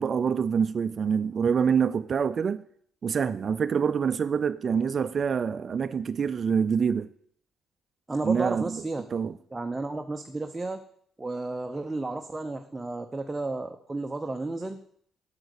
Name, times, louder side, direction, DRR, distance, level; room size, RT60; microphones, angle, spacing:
voice 1, 0.0-2.6 3.0-7.1 8.2-8.8 9.1-9.3, right 6 dB, 45° right, 0.4 m, -26 dB
voice 2, 8.1-9.0 9.5-10.8 11.2-14.8, right 2 dB, 15° right, 0.8 m, -32 dB
8.0 x 8.0 x 6.6 m
cardioid pair, 90°, 0 cm